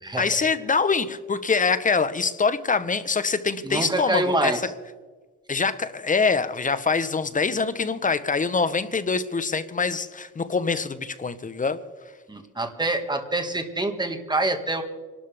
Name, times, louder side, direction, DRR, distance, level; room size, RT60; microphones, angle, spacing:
voice 1, 0.2-4.6 5.5-11.8, left 4 dB, 25° left, 1.0 m, -24 dB
voice 2, 3.6-4.6 12.3-14.8, right 2 dB, 15° right, 1.9 m, -26 dB
26.0 x 12.5 x 3.5 m
cardioid pair, 90°, 30 cm